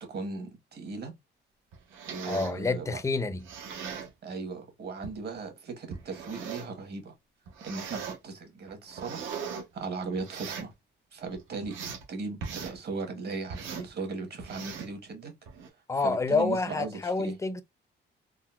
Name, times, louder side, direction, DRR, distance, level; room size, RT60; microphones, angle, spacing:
voice 1, 0.1-1.1 2.1-3.0 4.2-7.1 7.6-10.7 11.1-11.8 12.1-15.3 16.0-17.3, right 4 dB, 55° right, 1.1 m, -37 dB
sound 1, 1.7-2.6 3.3-4.1 5.0-5.2 5.9-6.8 7.5-8.2 8.7-9.6 10.2-10.7 11.2-12.0 12.4-12.8 13.5-13.9 14.4-14.9 15.5-15.7, right 6 dB, 80° right, 0.8 m, -39 dB
voice 2, 2.3-3.4 15.9-17.6, left 3 dB, 15° left, 0.4 m, -28 dB
3.7 x 2.1 x 2.2 m
cardioid pair, 90°, 20 cm